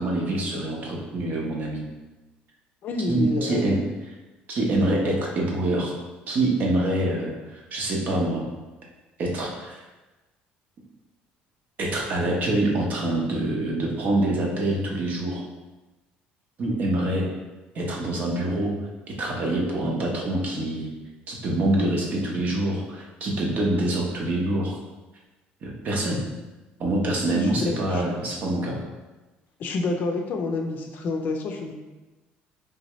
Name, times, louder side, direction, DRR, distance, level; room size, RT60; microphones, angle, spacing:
voice 1, 0.0-1.8 3.1-3.8 4.5-5.9 6.3-8.4 9.2-9.9 11.8-15.4 16.6-17.3 17.7-18.7 19.2-20.9 21.3-24.8 25.6-26.2 26.8-28.8, right 1 dB, 50° right, -1 dB, 0.8 m, -25 dB
voice 2, 2.8-3.8 27.3-28.1 29.6-31.7, left 3 dB, 50° left, 3 dB, 0.4 m, -28 dB
3.4 x 2.7 x 3.0 m, 1.1 s
cardioid pair, 130°, 4 cm